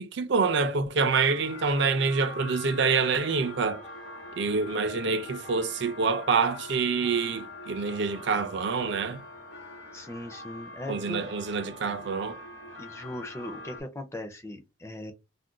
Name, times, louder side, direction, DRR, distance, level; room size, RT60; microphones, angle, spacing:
voice 1, 0.0-3.8 4.4-9.2 10.9-12.4, right 4 dB, 60° right, 0.4 m, -26 dB
sound 1, 1.2-13.8, left 2 dB, 85° left, 1.0 m, -43 dB
voice 2, 9.9-11.2 12.8-15.1, left 1 dB, 15° left, 0.4 m, -39 dB
2.5 x 2.2 x 3.6 m
head